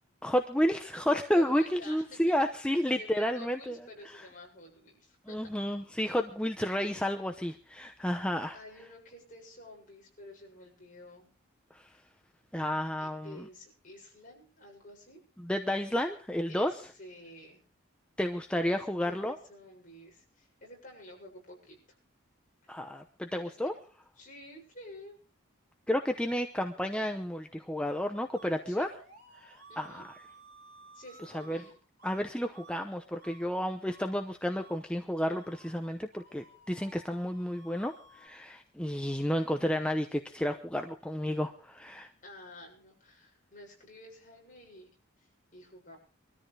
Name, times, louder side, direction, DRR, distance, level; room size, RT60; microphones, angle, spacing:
voice 1, 0.2-3.8 5.3-8.6 11.7-11.9 12.5-13.4 15.4-16.7 18.2-19.4 22.7-23.7 25.9-28.9 29.3-30.1 31.3-31.6 32.0-42.1, equal, 5° left, 5 dB, 0.8 m, -31 dB
voice 2, 1.3-2.3 2.7-5.6 8.5-11.3 13.0-15.2 16.5-17.6 18.5-21.8 22.6-22.9 23.4-23.6 24.2-25.2 28.7-28.9 29.7-30.0 30.9-31.8 42.2-44.9 45.2-46.0, left 1 dB, 40° left, 0 dB, 7.2 m, -50 dB
sound 1, 28.3-31.7 32.0-32.2 32.5-32.8 33.2-33.5 33.8-34.2 34.5-34.8 35.3-38.3, right 3 dB, 50° right, 4.6 m, -55 dB
23.0 x 13.5 x 3.4 m, 0.38 s
head